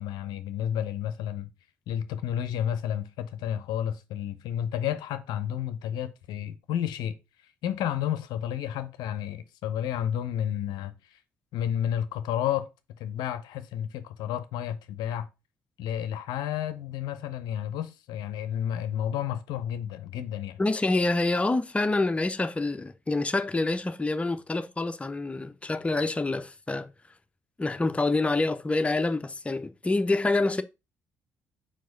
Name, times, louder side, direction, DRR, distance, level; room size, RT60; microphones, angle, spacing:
voice 1, 0.0-1.5 1.9-7.1 7.6-11.2 11.5-12.7 13.0-15.3 15.8-20.6, left 10 dB, 60° left, 0.6 m, -31 dB
voice 2, 20.6-26.9 27.6-30.6, left 2 dB, 15° left, 0.6 m, -27 dB
4.7 x 4.6 x 5.3 m
figure-of-eight pair, 45°, 8 cm